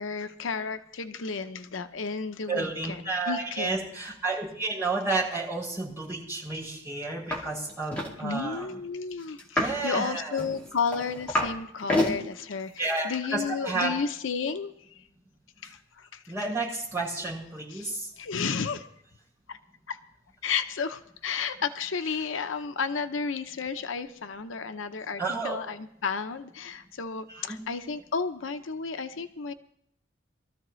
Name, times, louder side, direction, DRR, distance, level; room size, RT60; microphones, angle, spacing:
voice 1, 0.0-3.8 8.2-15.0 15.6-16.2 17.7-18.9 19.5-19.6 19.9-20.0 20.4-29.5, left 5 dB, 85° left, 10 dB, 0.7 m, -32 dB
voice 2, 2.5-8.7 9.5-10.4 12.8-13.9 16.3-18.1 22.1-22.3 25.2-25.6 27.3-27.6, right 3 dB, 15° right, -6 dB, 6.4 m, -31 dB
sound 1, 7.3-7.4 7.7-8.1 9.4-9.8 10.4-11.5 11.8-12.2 12.8-13.0, left 1 dB, 5° left, 2.2 m, -28 dB
22.5 x 13.5 x 3.1 m, 0.71 s
head